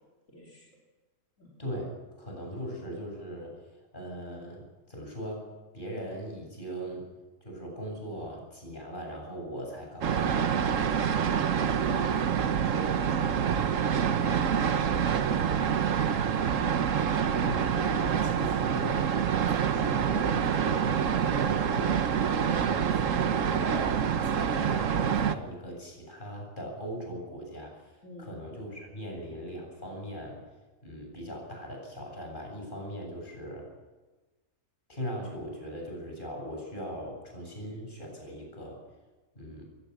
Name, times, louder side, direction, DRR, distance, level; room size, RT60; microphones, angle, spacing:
voice 1, 0.3-0.7 1.4-1.5 12.7-12.9 28.0-28.3, equal, 65° left, -1 dB, 3.8 m, -45 dB
voice 2, 1.6-1.9 2.2-3.7 3.9-5.4 5.7-7.0 7.4-11.4 12.1-12.4 12.8-13.3 17.4-19.2 19.5-23.9 24.2-30.4 30.8-33.7 34.9-38.8 39.3-39.6, equal, 35° left, 0 dB, 8.4 m, -40 dB
sound 1, 10.0-25.3, right 7 dB, 70° right, 1.4 m, -26 dB
22.0 x 18.5 x 7.2 m, 1.2 s
omnidirectional pair, 1.4 m